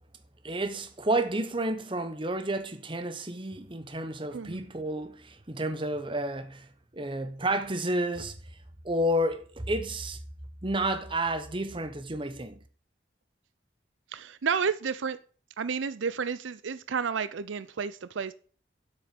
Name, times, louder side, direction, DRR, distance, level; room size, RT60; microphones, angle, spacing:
voice 1, 0.4-8.4 8.8-10.2 10.6-12.6, right 1 dB, 25° right, 1.0 m, -31 dB
voice 2, 4.3-4.6 14.1-15.2 15.6-18.3, right 6 dB, 80° right, 0.5 m, -31 dB
7.9 x 6.4 x 7.5 m
head